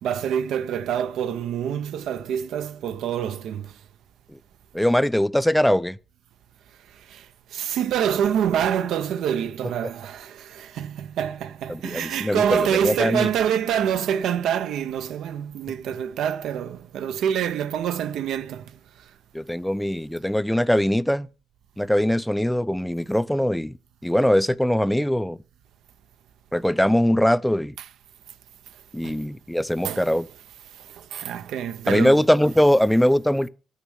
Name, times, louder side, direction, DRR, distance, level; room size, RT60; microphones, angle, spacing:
voice 1, 0.0-3.8 6.9-18.8 29.0-29.2 29.8-30.1 30.7-32.2, right 9 dB, 80° right, 0.6 m, -26 dB
voice 2, 4.7-6.0 11.7-13.3 19.3-21.3 21.8-23.7 24.0-25.4 26.5-27.7 28.9-30.3 31.9-33.5, equal, 5° left, 0.4 m, -21 dB
8.8 x 6.6 x 6.3 m
cardioid pair, 90°, 0 cm